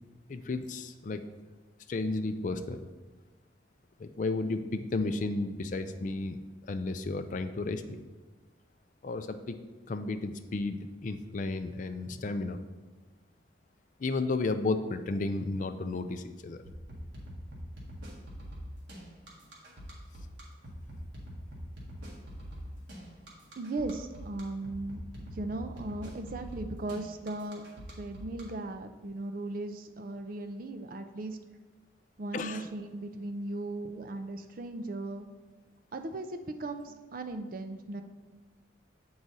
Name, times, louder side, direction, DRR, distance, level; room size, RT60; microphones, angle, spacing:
voice 1, 0.3-1.2 1.9-2.9 4.0-6.4 6.7-8.0 9.0-9.6 9.9-12.6 14.0-16.6 32.3-32.7, left 3 dB, 40° left, 9 dB, 0.3 m, -33 dB
sound 1, 16.6-28.4, equal, 65° right, 1.6 m, -44 dB
voice 2, 23.6-27.6 27.9-31.4 32.2-35.3 35.9-38.0, right 2 dB, 45° right, 7 dB, 0.4 m, -37 dB
7.6 x 4.7 x 4.0 m, 1.3 s
head